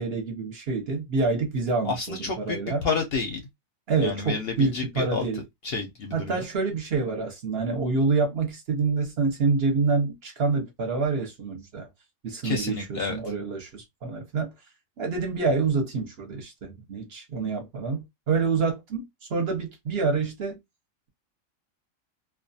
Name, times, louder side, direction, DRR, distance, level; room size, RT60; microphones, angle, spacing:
voice 1, 0.0-2.8 3.9-5.4 6.1-11.9 12.2-14.5 15.0-19.0 19.3-20.6, right 4 dB, 55° right, 0.8 m, -27 dB
voice 2, 1.8-3.4 4.0-5.3 5.6-6.4 12.4-13.2, left 4 dB, 60° left, 0.7 m, -30 dB
2.4 x 2.3 x 2.6 m
omnidirectional pair, 1.4 m